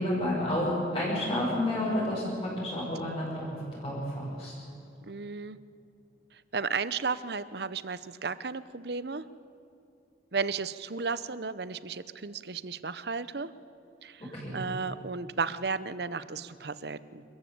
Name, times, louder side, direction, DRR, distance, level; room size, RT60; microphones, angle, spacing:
voice 1, 0.0-4.5 14.3-14.6, left 1 dB, 25° left, -9 dB, 6.2 m, -30 dB
voice 2, 5.1-5.6 6.3-9.3 10.3-13.5 14.0-17.2, right 4 dB, 60° right, 15 dB, 0.8 m, -34 dB
27.0 x 14.5 x 8.7 m, 2.7 s
head